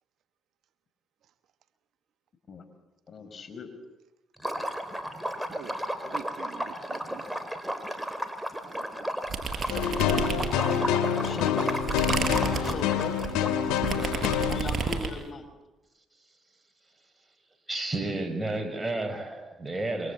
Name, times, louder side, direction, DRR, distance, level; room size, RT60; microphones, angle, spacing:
voice 1, 3.1-3.7 11.2-11.6 12.5-13.2 14.5-15.5, left 5 dB, 50° left, 5.3 m, -39 dB
Liquid, 4.4-14.3, equal, 5° right, 4.1 m, -34 dB
voice 2, 5.5-7.2 8.6-9.1, right 8 dB, 70° right, 1.4 m, -46 dB
sound 1, 9.3-10.9 11.3-15.2, right 5 dB, 45° right, 6.5 m, -31 dB
sound 2, 9.7-14.7, left 8 dB, 90° left, 2.2 m, -27 dB
voice 3, 16.0-16.4 16.8-17.3 17.7-20.1, right 2 dB, 20° right, 5.8 m, -33 dB
28.0 x 24.0 x 8.4 m
supercardioid pair, 60°, 0 cm